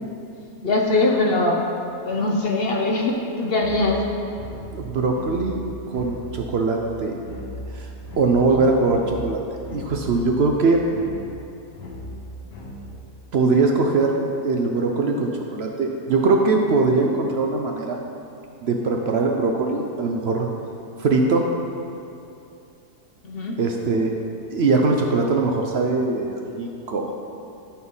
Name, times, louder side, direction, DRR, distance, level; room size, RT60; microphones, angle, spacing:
voice 1, 0.6-1.7 2.0-4.0 8.5-8.7 23.2-23.6, left 2 dB, 50° left, 0 dB, 0.8 m, -22 dB
sound 1, 3.6-13.1, equal, 70° left, 1.6 m, -38 dB
voice 2, 4.7-7.2 7.7-7.9 8.2-9.4 9.7-10.8 13.3-18.0 18.6-20.5 21.0-21.5 23.6-24.2 24.5-27.1, right 3 dB, 60° right, 1 dB, 0.7 m, -21 dB
11.5 x 4.1 x 5.4 m, 2.6 s
omnidirectional pair, 1.7 m